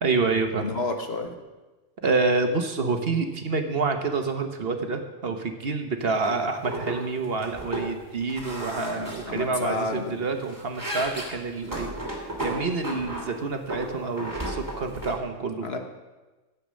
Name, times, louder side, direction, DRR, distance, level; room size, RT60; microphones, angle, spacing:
voice 1, 0.0-0.7 2.0-11.9 12.4-15.7, right 4 dB, 50° right, 6 dB, 1.2 m, -27 dB
voice 2, 0.6-1.3 8.8-10.2 15.6-15.8, left 3 dB, 55° left, 4 dB, 1.5 m, -31 dB
sound 1, 6.2-6.3 6.6-7.0 7.2-7.9 8.3-9.9 10.3-13.3 13.7-15.2, right 1 dB, 15° right, 2.5 m, -34 dB
13.5 x 8.3 x 6.3 m, 1.2 s
omnidirectional pair, 1.3 m